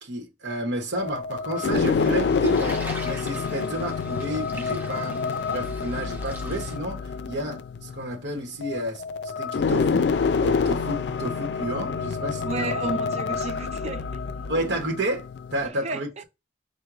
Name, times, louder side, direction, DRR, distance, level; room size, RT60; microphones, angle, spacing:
voice 1, 0.0-2.8 3.0-5.2 5.5-9.0 9.4-12.7 14.5-15.2 15.5-16.1, right 1 dB, 85° right, 1.0 m, -31 dB
sound 1, 0.9-15.7, left 5 dB, 70° left, 0.4 m, -27 dB
sound 2, 1.5-6.8, right 1 dB, 10° right, 0.9 m, -42 dB
voice 2, 12.4-14.0 15.6-16.2, right 3 dB, 35° right, 0.5 m, -32 dB
4.6 x 2.2 x 3.7 m
head